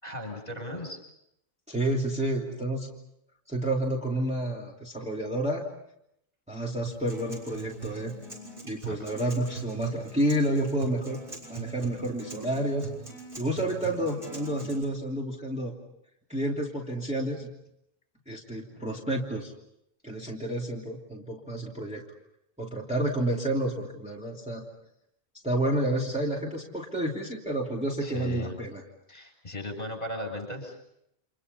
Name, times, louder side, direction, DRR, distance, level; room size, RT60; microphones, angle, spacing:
voice 1, 0.0-1.0 8.8-9.0 28.0-28.5 29.1-30.8, left 1 dB, 40° left, 2 dB, 7.3 m, -36 dB
voice 2, 1.7-2.9 3.5-5.6 6.5-8.1 8.6-11.2 11.5-12.9 13.4-15.7 16.3-17.5 18.3-19.5 20.0-22.0 22.6-24.6 25.4-28.8, right 1 dB, 5° right, -3 dB, 2.9 m, -30 dB
Acoustic guitar, 6.8-14.8, right 4 dB, 55° right, 6.7 m, -42 dB
30.0 x 27.5 x 5.5 m, 0.77 s
omnidirectional pair, 1.1 m